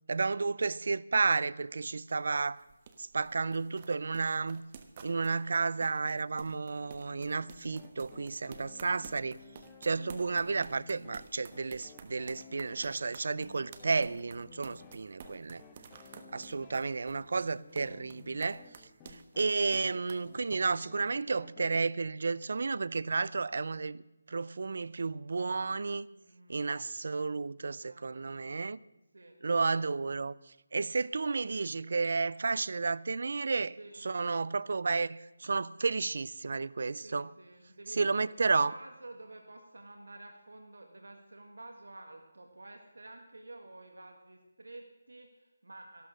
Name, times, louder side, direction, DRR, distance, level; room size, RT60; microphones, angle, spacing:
voice 1, 0.1-2.6 3.0-4.6 5.0-9.4 9.8-15.6 16.3-18.6 19.4-24.0 24.3-26.1 26.5-28.8 29.4-30.3 30.7-33.8 34.0-37.3 37.9-38.7, right 4 dB, 60° right, 0.4 m, -32 dB
sound 1, 1.6-20.6, right 6 dB, 30° right, 1.1 m, -52 dB
sound 2, 6.8-21.8, left 5 dB, 15° left, 1.2 m, -55 dB
voice 2, 26.1-26.6 27.7-28.5 29.1-29.4 33.8-34.0 37.0-46.1, right 2 dB, 85° right, 1.8 m, -51 dB
13.5 x 12.0 x 6.3 m
figure-of-eight pair, 160°, 0 cm